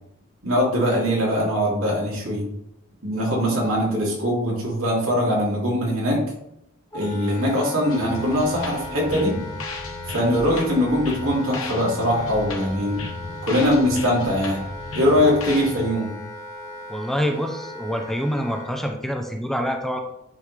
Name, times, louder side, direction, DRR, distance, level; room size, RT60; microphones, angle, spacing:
voice 1, 0.4-2.4 3.0-6.2 6.9-9.4 10.1-13.0 13.4-14.6 14.9-16.2, equal, 75° right, -4 dB, 2.6 m, -22 dB
Wind instrument woodwind instrument, 6.9-18.7, left 2 dB, 15° left, 1.4 m, -38 dB
sound 1, 7.9-15.9, left 2 dB, 70° left, 1.2 m, -35 dB
voice 2, 16.9-20.0, equal, ahead, 3 dB, 0.5 m, -26 dB
9.4 x 3.7 x 3.3 m, 0.79 s
head